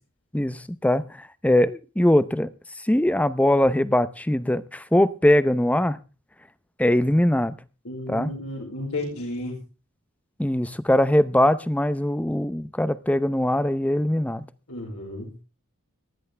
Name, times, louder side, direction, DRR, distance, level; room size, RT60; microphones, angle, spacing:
voice 1, 0.3-2.5 2.9-6.0 6.8-7.5 8.1-8.3 10.4-14.4, left 1 dB, 5° left, 0.7 m, -21 dB
voice 2, 7.8-9.6 14.7-15.3, left 1 dB, 70° left, 4.8 m, -32 dB
19.5 x 13.5 x 3.4 m
head